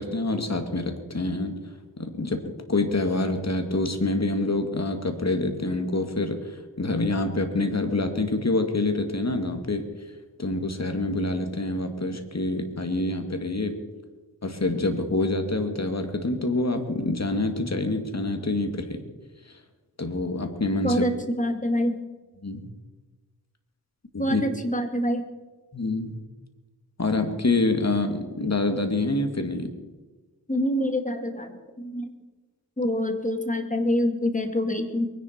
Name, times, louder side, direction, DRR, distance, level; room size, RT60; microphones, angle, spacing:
voice 1, 0.0-1.6 2.0-2.4 2.7-9.9 10.4-13.7 14.4-19.0 20.0-21.1 22.4-22.7 24.1-24.4 25.7-26.2 27.0-29.7, left 2 dB, 40° left, 6 dB, 2.3 m, -26 dB
voice 2, 20.8-22.0 24.2-25.2 30.5-31.5 31.8-32.1 32.8-35.1, equal, 20° left, 6 dB, 2.4 m, -26 dB
22.5 x 10.5 x 4.6 m, 1.2 s
cardioid pair, 45°, 40 cm